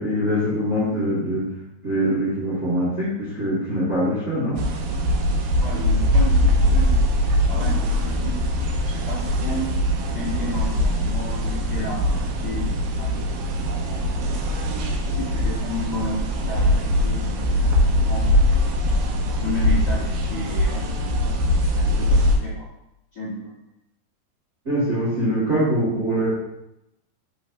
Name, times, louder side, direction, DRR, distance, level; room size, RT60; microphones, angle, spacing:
voice 1, 0.0-1.4 1.8-4.6 24.6-26.3, equal, 25° right, -9 dB, 1.6 m, -23 dB
sound 1, 4.6-22.4, left 1 dB, 75° right, 2.3 m, -21 dB
voice 2, 5.6-7.0 7.5-9.6 10.1-13.2 13.7-14.1 14.8-17.6 18.1-18.3 18.8-21.3 21.7-22.7 23.1-23.5, left 2 dB, 40° left, -8 dB, 1.5 m, -33 dB
11.5 x 4.0 x 3.0 m, 0.84 s
omnidirectional pair, 4.8 m